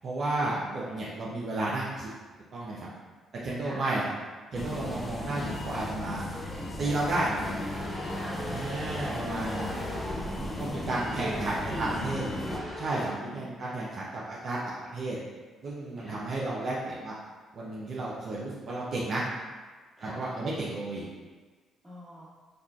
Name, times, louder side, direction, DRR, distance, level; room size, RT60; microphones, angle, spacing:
voice 1, 0.0-2.1 2.5-2.9 3.4-4.1 4.5-6.3 6.8-7.3 8.5-9.8 10.6-12.3 12.8-15.2 15.6-17.2 17.5-19.2 20.0-21.0, right 2 dB, 55° right, -6 dB, 0.5 m, -32 dB
voice 2, 0.5-1.2 3.6-3.8 7.0-7.7 8.1-8.4 10.4-10.9 11.2-12.0 13.0-13.5 16.0-16.2 20.0-20.2 21.8-22.3, right 1 dB, 15° right, -8 dB, 1.3 m, -42 dB
sound 1, 4.5-12.6, left 1 dB, 20° left, 0.5 m, -36 dB
sound 2, 7.3-13.1, equal, 5° left, 1.2 m, -39 dB
3.6 x 2.3 x 2.3 m, 1.4 s
hypercardioid pair, 55°, 0 cm